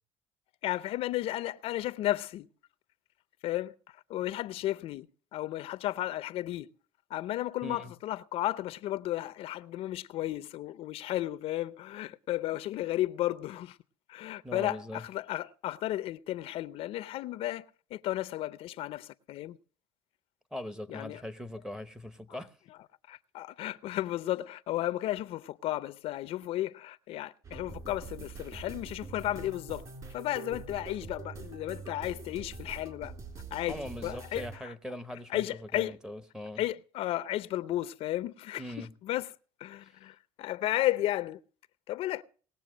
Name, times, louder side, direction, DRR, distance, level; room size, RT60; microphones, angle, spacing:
voice 1, 0.6-2.5 3.4-5.1 5.3-6.7 7.1-13.8 14.1-19.6 20.9-21.2 22.3-22.8 23.1-29.8 30.1-33.1 33.5-34.7 35.3-36.0 36.6-41.4 41.9-42.2, left 14 dB, 60° left, 0.6 m, -34 dB
voice 2, 7.6-7.9 14.4-15.0 20.5-22.5 33.7-35.4 35.7-36.6 38.6-38.9, left 1 dB, 5° right, 0.9 m, -40 dB
sound 1, 27.4-34.6, right 4 dB, 35° right, 3.6 m, -44 dB
19.5 x 7.2 x 6.1 m
cardioid pair, 125°, 11 cm